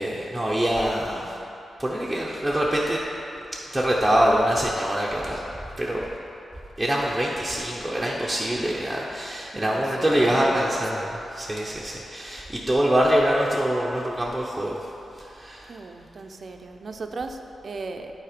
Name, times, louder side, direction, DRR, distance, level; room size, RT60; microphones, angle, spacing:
voice 1, 0.0-1.3 1.8-3.0 3.7-5.4 5.8-6.0 6.8-11.1 11.3-14.8 15.4-15.7, equal, 5° right, -5 dB, 0.7 m, -24 dB
voice 2, 9.5-11.1 15.7-18.1, right 3 dB, 50° right, 5 dB, 0.5 m, -36 dB
8.7 x 4.2 x 5.1 m, 2.9 s
cardioid pair, 100°, 0 cm